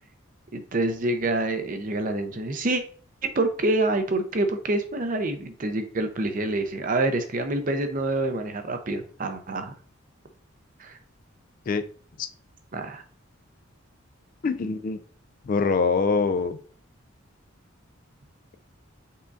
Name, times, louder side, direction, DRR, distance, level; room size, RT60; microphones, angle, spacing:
voice 1, 0.5-2.8 3.2-9.7 10.8-11.0 12.7-13.0, right 2 dB, 40° right, 7 dB, 0.6 m, -27 dB
voice 2, 14.4-15.0 15.5-16.6, left 4 dB, 40° left, 11 dB, 0.3 m, -24 dB
5.6 x 3.7 x 2.6 m, 0.43 s
head